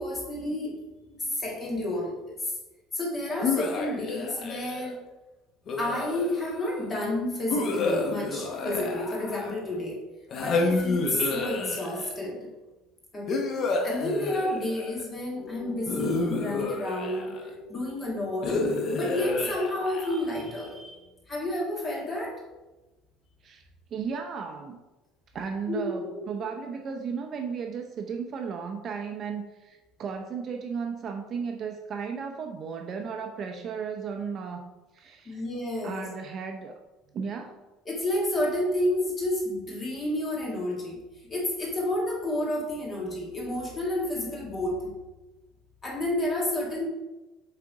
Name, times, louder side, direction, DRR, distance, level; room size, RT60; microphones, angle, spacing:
voice 1, 0.0-2.5 2.9-5.0 5.8-10.0 10.4-12.5 13.1-13.5 13.8-17.3 17.7-18.6 19.0-21.0 21.3-22.4 25.7-26.2 35.3-36.1 37.9-41.0 41.3-44.9 45.8-46.9, left 1 dB, 20° left, -2 dB, 1.8 m, -30 dB
sound 1, 3.4-4.9 5.7-6.6 7.5-9.7 10.3-12.2 13.3-15.0 15.9-17.5 18.4-20.4, left 3 dB, 35° left, 0.9 m, -29 dB
sound 2, 15.4-18.9, left 4 dB, 75° left, 1.1 m, -43 dB
voice 2, 23.9-24.8 25.3-35.4 35.8-36.7 37.1-37.6, right 6 dB, 30° right, 4 dB, 0.5 m, -35 dB
7.5 x 3.8 x 4.7 m, 1.1 s
cardioid pair, 165°, 0 cm